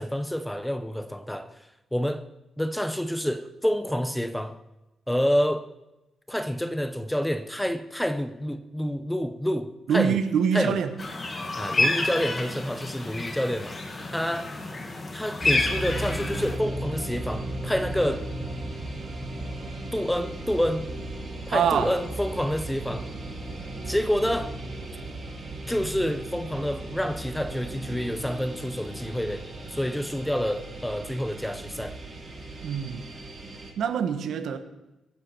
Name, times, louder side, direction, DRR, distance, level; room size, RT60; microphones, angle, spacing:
voice 1, 0.0-1.5 1.9-2.2 2.6-4.6 5.1-5.6 6.3-10.2 10.5-10.8 11.6-13.8 14.1-14.5 15.1-18.2 19.9-20.9 21.5-23.1 23.9-24.5 25.7-29.4 29.7-32.0, equal, 5° left, 9 dB, 0.7 m, -28 dB
voice 2, 9.9-10.9 21.5-21.9 32.6-33.1 33.8-34.6, right 7 dB, 70° right, 10 dB, 1.3 m, -25 dB
sound 1, 11.0-16.6, left 2 dB, 25° left, 1.6 m, -29 dB
sound 2, 15.4-33.7, right 1 dB, 20° right, 3.2 m, -36 dB
23.0 x 10.0 x 4.5 m, 0.96 s
wide cardioid pair, 170°, 0 cm